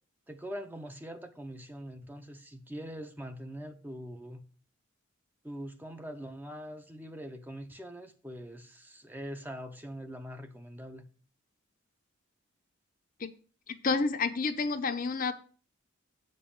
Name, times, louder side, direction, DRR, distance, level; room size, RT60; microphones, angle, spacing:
voice 1, 0.3-4.4 5.4-11.1, equal, 10° right, 0.6 m, -43 dB
voice 2, 13.8-15.3, left 4 dB, 40° left, 0.7 m, -29 dB
8.3 x 5.4 x 7.0 m
head